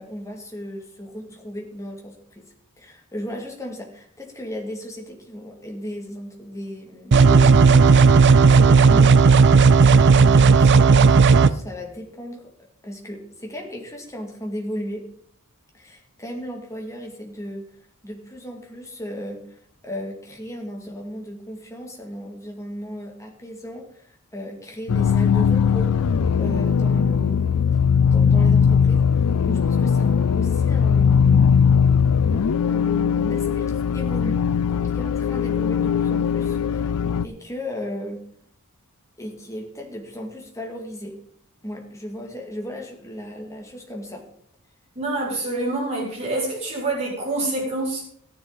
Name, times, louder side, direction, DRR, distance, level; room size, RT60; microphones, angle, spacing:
voice 1, 0.0-12.5 12.8-15.1 15.7-17.6 18.0-25.9 26.4-27.8 28.1-31.7 32.7-34.4 34.9-36.9 37.2-38.3 39.2-41.2 41.6-44.3, equal, 15° left, 1 dB, 2.2 m, -35 dB
sound 1, 7.1-11.5, right 5 dB, 50° right, 0.5 m, -13 dB
sound 2, 24.9-37.3, left 7 dB, 80° left, 0.4 m, -19 dB
voice 2, 44.9-48.0, right 2 dB, 30° right, -6 dB, 6.0 m, -26 dB
14.0 x 10.0 x 4.0 m, 0.65 s
head